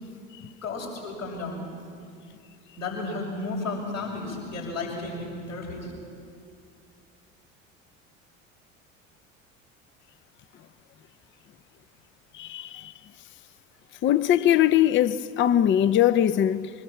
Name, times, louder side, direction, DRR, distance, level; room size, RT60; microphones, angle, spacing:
voice 1, 0.6-1.7 2.8-5.9, left 3 dB, 80° left, 6.5 m, -33 dB
voice 2, 12.4-12.9 14.0-16.7, left 11 dB, 30° left, 0.6 m, -21 dB
24.0 x 21.0 x 7.4 m
figure-of-eight pair, 65°, 39 cm